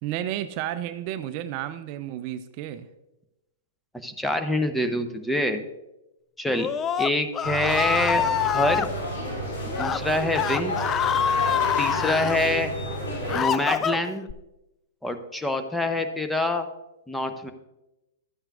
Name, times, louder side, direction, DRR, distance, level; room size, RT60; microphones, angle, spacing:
voice 1, 0.0-2.9, right 12 dB, 45° right, 12 dB, 0.4 m, -32 dB
voice 2, 4.0-5.6 6.4-6.7 7.0-8.3 8.5-8.9 9.8-10.8 11.8-12.7 13.3-14.3 15.0-16.7 17.1-17.5, left 1 dB, 5° left, 7 dB, 0.7 m, -25 dB
Screaming, 6.5-8.9 9.7-10.0 10.3-12.4 12.9-14.3, left 8 dB, 25° left, 0.3 m, -25 dB
sound 1, 7.4-13.4, equal, 65° left, 2.9 m, -31 dB
11.5 x 8.8 x 2.4 m, 0.96 s
hypercardioid pair, 110°, 0 cm